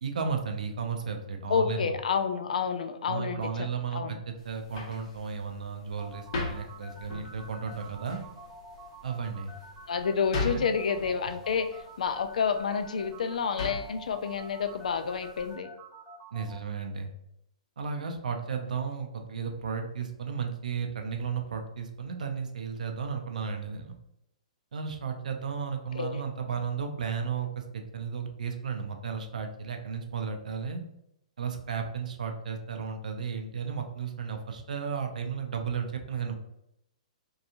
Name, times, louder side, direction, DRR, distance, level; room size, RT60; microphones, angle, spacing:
voice 1, 0.0-1.9 3.1-8.2 9.0-9.5 10.3-10.7 16.3-17.1 17.8-24.0 24.7-30.8 31.4-36.3, right 6 dB, 80° right, 5 dB, 0.5 m, -34 dB
voice 2, 1.5-4.2 9.9-15.7 26.0-26.2, left 6 dB, 75° left, 8 dB, 0.3 m, -29 dB
sound 1, 4.4-15.5, left 3 dB, 55° left, 0.9 m, -41 dB
sound 2, 6.0-16.6, right 2 dB, 15° right, 0.6 m, -48 dB
2.8 x 2.3 x 2.5 m, 0.81 s
hypercardioid pair, 135°, 4 cm